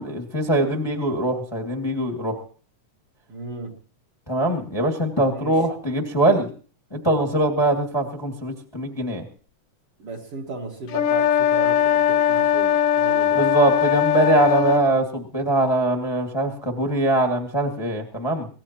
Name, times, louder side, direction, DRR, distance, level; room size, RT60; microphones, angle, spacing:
voice 1, 0.0-2.4 4.3-6.5 6.9-9.2 13.3-18.5, right 1 dB, 10° left, 2 dB, 1.3 m, -22 dB
voice 2, 3.3-3.7 5.3-5.6 10.0-13.4, right 3 dB, 50° right, 1 dB, 2.5 m, -35 dB
sound 1, 10.9-14.9, left 10 dB, 70° left, 1.5 m, -20 dB
23.5 x 18.0 x 3.0 m, 0.40 s
omnidirectional pair, 3.7 m